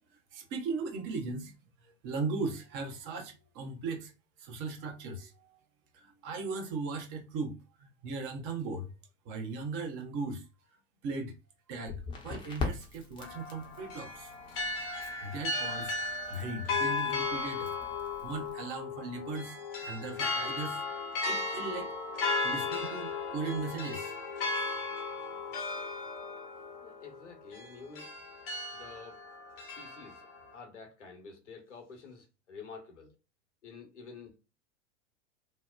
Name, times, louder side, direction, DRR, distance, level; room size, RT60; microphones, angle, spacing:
voice 1, 0.3-1.5 1.8-4.1 4.4-5.6 5.9-7.6 8.0-8.9 9.3-10.4 11.0-11.3 11.7-14.3 15.2-17.7 18.2-20.8 21.2-21.9 22.4-24.1, right 4 dB, 35° right, 0.7 m, -38 dB
Crackle, 11.8-18.5, left 3 dB, 15° left, 0.6 m, -43 dB
sound 1, 13.2-30.5, left 3 dB, 50° left, 0.8 m, -36 dB
voice 2, 26.8-28.1 28.7-29.2 29.6-30.3 30.5-33.1 33.6-34.4, left 4 dB, 70° left, 0.9 m, -49 dB
2.9 x 2.0 x 2.2 m
figure-of-eight pair, 85°, 36 cm